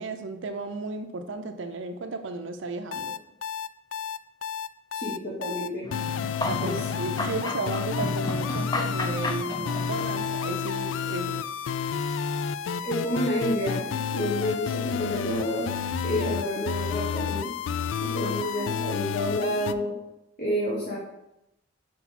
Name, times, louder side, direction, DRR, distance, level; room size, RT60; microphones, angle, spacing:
voice 1, 0.0-3.2 6.5-11.4 18.2-18.9 19.3-19.7, right 3 dB, 75° right, 6 dB, 0.5 m, -34 dB
sound 1, 2.9-19.7, left 7 dB, 80° left, 0.3 m, -30 dB
voice 2, 4.9-5.8 6.6-6.8 12.8-15.7 16.0-17.5 18.0-19.9 20.4-21.0, equal, 45° left, -5 dB, 1.3 m, -29 dB
sound 2, 5.8-10.5, left 2 dB, 20° left, 0.5 m, -33 dB
5.8 x 4.7 x 4.2 m, 0.87 s
head